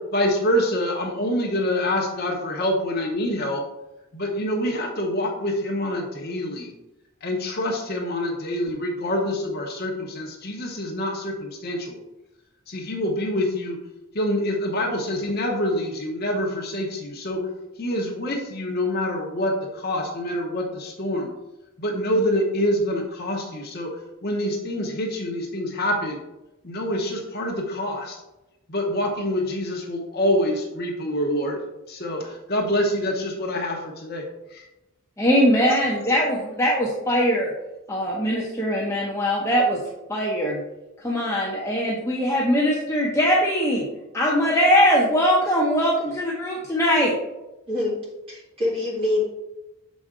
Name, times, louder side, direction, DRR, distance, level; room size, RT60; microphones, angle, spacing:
voice 1, 0.1-3.6 4.1-6.7 7.2-12.0 12.7-13.8 14.1-17.4 17.8-21.3 21.8-23.9 24.2-26.2 26.6-28.2 28.7-31.6 31.9-34.2 34.5-34.6, left 1 dB, 45° left, 1 dB, 1.0 m, -26 dB
voice 2, 35.2-37.5 37.9-39.8 40.1-40.6 41.0-43.9 44.1-47.1, equal, 10° left, -4 dB, 0.8 m, -21 dB
voice 3, 48.3-49.3, left 2 dB, 25° right, -5 dB, 2.4 m, -25 dB
6.9 x 5.2 x 3.7 m, 0.97 s
head